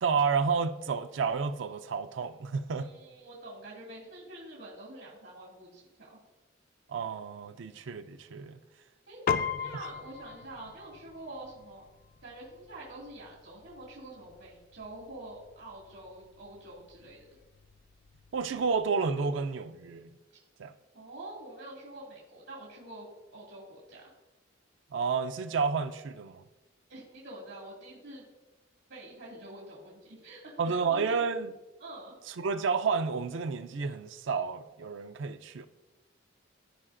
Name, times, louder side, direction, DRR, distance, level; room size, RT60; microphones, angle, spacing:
voice 1, 0.0-2.9 6.9-8.6 18.3-20.1 20.6-20.7 24.9-26.4 30.6-31.5 32.4-35.6, right 5 dB, 65° right, 0.4 m, -30 dB
voice 2, 2.7-6.2 7.4-7.5 9.1-9.3 9.6-11.9 12.2-17.3 20.3-20.4 20.9-23.1 23.3-24.0 26.9-28.2 28.9-31.2 31.8-32.1, right 1 dB, 85° right, 2.1 m, -46 dB
Piano, 9.3-18.9, left 6 dB, 45° left, 0.4 m, -40 dB
14.0 x 4.7 x 2.5 m
head